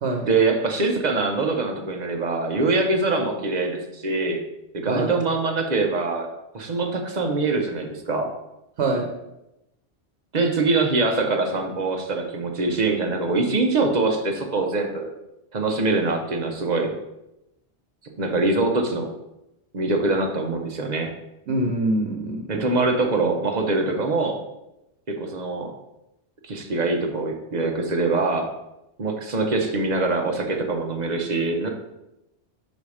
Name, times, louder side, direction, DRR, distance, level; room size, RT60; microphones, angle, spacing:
voice 1, 0.3-4.4 4.7-6.3 6.5-8.3 10.3-15.1 15.5-16.9 18.2-19.1 19.7-21.1 22.5-24.4 25.1-25.7 26.4-28.5 29.0-31.7, right 3 dB, 45° right, 3 dB, 0.9 m, -23 dB
voice 2, 8.8-9.1 21.5-22.6, right 2 dB, 90° right, 2 dB, 1.1 m, -24 dB
5.5 x 4.2 x 4.8 m, 0.89 s
omnidirectional pair, 1.1 m